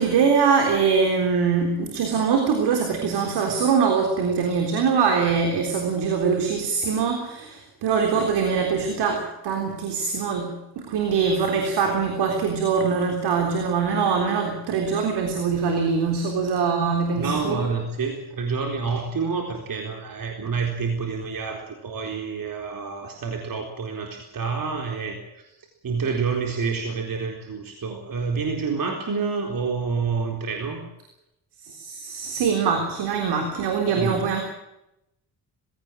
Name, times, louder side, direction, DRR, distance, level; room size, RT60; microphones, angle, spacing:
voice 1, 0.0-17.6 31.6-34.4, right 5 dB, 90° right, 4 dB, 3.8 m, -23 dB
voice 2, 17.2-30.8 33.9-34.1, right 5 dB, 60° right, 3 dB, 4.1 m, -28 dB
20.5 x 17.5 x 9.0 m, 0.86 s
cardioid pair, 70°, 39 cm